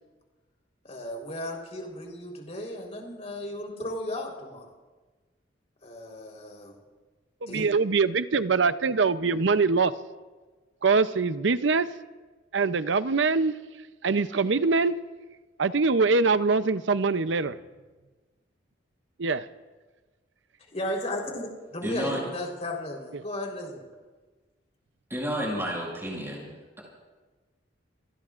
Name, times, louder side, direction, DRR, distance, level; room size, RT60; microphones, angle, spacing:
voice 1, 0.8-4.7 5.8-6.7 7.5-7.7 20.7-23.8, left 1 dB, 35° left, 0 dB, 4.0 m, -35 dB
voice 2, 7.4-9.9 10.8-11.9 12.5-13.5 14.0-14.9 15.6-17.6 19.2-19.5, right 4 dB, 75° right, 13 dB, 0.6 m, -23 dB
voice 3, 21.8-22.2 25.1-26.5, equal, 15° right, -3 dB, 6.6 m, -31 dB
30.0 x 19.5 x 2.5 m, 1.3 s
head